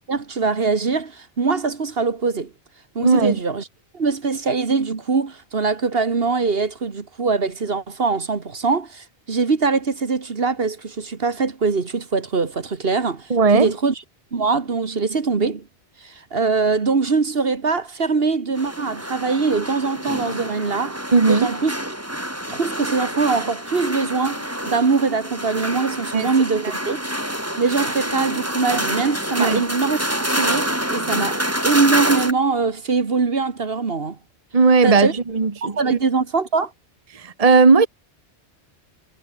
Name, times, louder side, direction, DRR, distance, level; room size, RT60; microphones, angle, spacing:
voice 1, 0.1-2.5 3.0-3.6 3.9-13.9 14.3-15.6 16.0-21.0 21.3-21.7 22.5-27.0 27.6-34.2 34.8-35.1 35.6-36.7, right 4 dB, 55° right, 1.8 m, -22 dB
voice 2, 3.0-3.4 13.3-13.7 21.1-21.5 26.1-26.3 26.6-26.7 29.4-29.6 34.5-36.0 37.1-37.9, right 4 dB, 35° right, 1.4 m, -16 dB
sound 1, 18.5-32.3, equal, 10° right, 7.0 m, -27 dB
omnidirectional pair, 1.2 m